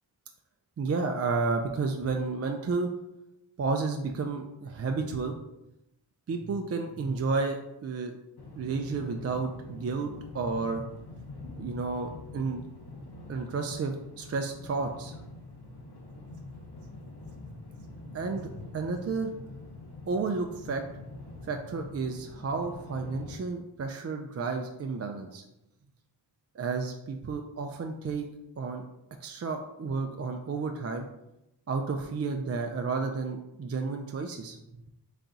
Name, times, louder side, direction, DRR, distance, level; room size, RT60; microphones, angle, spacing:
voice 1, 0.8-2.9 3.6-5.4 6.3-8.1 8.6-10.8 11.6-12.6 13.3-15.1 18.1-18.5 18.7-19.3 20.1-20.8 21.5-25.4 26.6-28.3 28.6-28.8 29.2-31.1 31.7-34.6, right 4 dB, 35° right, 4 dB, 0.4 m, -31 dB
sound 1, 8.4-23.4, left 2 dB, 55° left, 0.9 m, -44 dB
4.1 x 2.3 x 3.8 m, 0.90 s
cardioid pair, 45°, 46 cm